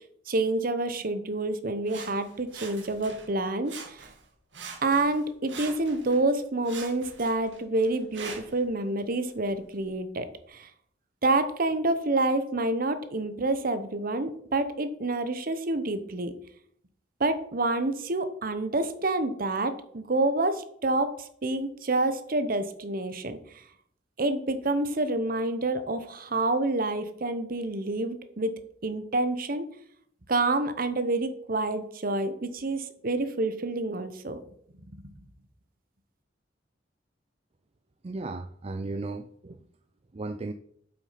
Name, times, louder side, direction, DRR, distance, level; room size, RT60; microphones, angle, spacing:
voice 1, 0.3-4.0 4.8-10.7 11.2-16.3 17.2-23.6 24.2-28.5 28.8-29.7 30.3-34.4, right 2 dB, 50° right, 11 dB, 0.9 m, -28 dB
Sawing, 1.9-3.3 3.6-4.3 4.5-6.2 6.6-8.6 9.3-9.4, right 5 dB, 80° right, 1.8 m, -43 dB
voice 2, 38.0-39.6 40.1-40.5, right 2 dB, 35° right, 9 dB, 0.4 m, -35 dB
7.6 x 6.1 x 5.8 m, 0.66 s
head